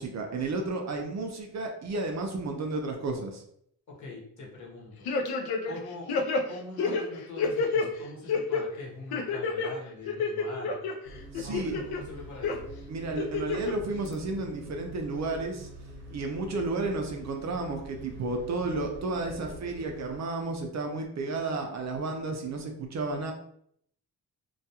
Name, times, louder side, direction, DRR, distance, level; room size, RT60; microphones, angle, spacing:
voice 1, 0.0-3.4 11.3-11.8 12.9-15.7 16.1-23.3, right 3 dB, 45° right, 3 dB, 0.4 m, -32 dB
voice 2, 4.0-5.1 5.6-6.1 6.5-10.8 11.4-12.7, left 2 dB, 50° left, -3 dB, 0.9 m, -43 dB
sound 1, 5.1-5.8 6.1-7.9 8.3-8.6 9.1-9.7 10.1-10.9 11.3-12.0 12.4-12.6 13.2-13.7 14.1-14.2, left 4 dB, 75° left, 0.5 m, -28 dB
sound 2, 11.0-20.2, right 1 dB, 90° right, 0.9 m, -45 dB
2.3 x 2.3 x 2.8 m, 0.69 s
cardioid pair, 110°, 38 cm